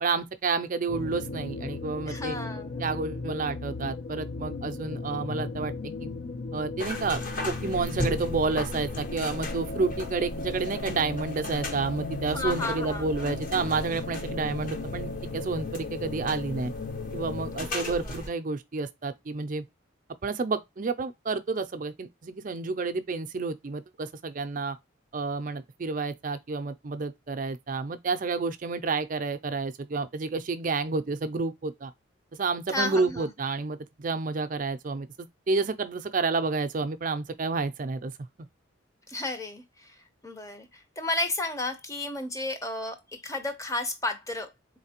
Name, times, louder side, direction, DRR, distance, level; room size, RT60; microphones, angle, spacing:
voice 1, 0.0-2.4 2.8-6.1 6.5-16.7 17.1-19.6 20.2-24.8 25.1-31.9 32.3-35.1 35.5-38.1, right 4 dB, 40° right, 0.4 m, -30 dB
sound 1, 0.9-17.7, left 3 dB, 55° left, 0.4 m, -36 dB
voice 2, 2.1-2.8 12.3-13.0 17.6-18.1 32.7-33.3 39.1-40.0 40.2-44.5, left 2 dB, 15° left, 0.7 m, -33 dB
sound 2, 6.8-18.3, left 1 dB, 40° left, 0.9 m, -38 dB
4.3 x 3.2 x 2.8 m
head